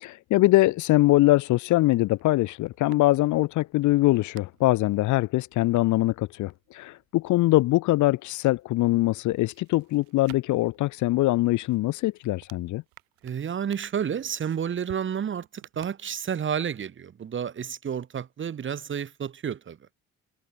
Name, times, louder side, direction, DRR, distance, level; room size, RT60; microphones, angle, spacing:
voice 1, 0.0-12.8, left 18 dB, 60° left, 0.4 m, -23 dB
sound 1, 1.7-8.3 8.6-16.6 16.8-16.9, right 30 dB, 90° right, 2.9 m, -55 dB
voice 2, 13.2-19.8, right 8 dB, 35° right, 0.9 m, -31 dB
supercardioid pair, 75°, 34 cm